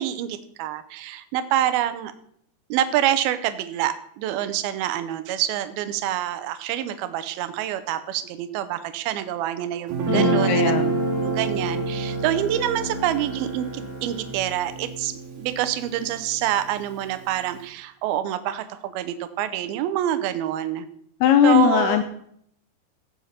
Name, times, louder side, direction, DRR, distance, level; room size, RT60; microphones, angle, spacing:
voice 1, 0.0-2.1 2.7-10.7 11.2-20.9 21.4-22.0, right 12 dB, 75° right, 11 dB, 2.4 m, -26 dB
Guitar, 9.9-16.2, right 3 dB, 55° right, 2.7 m, -27 dB
voice 2, 10.1-10.9 21.2-22.0, left 9 dB, 80° left, 8 dB, 2.3 m, -19 dB
Bowed string instrument, 10.6-15.6, equal, 25° left, 6.4 m, -40 dB
16.0 x 7.4 x 4.2 m, 0.68 s
omnidirectional pair, 5.0 m